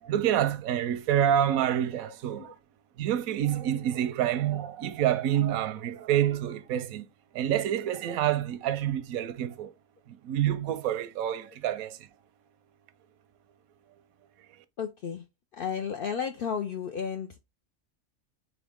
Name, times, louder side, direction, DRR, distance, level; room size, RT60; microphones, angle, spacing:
voice 1, 0.0-2.6 3.0-7.1 7.3-9.7 10.1-12.0, right 11 dB, 90° right, 1.1 m, -27 dB
voice 2, 2.0-2.5 3.9-4.0 14.8-15.3 15.5-17.5, left 7 dB, 70° left, 0.5 m, -34 dB
3.7 x 3.5 x 3.5 m
omnidirectional pair, 1.4 m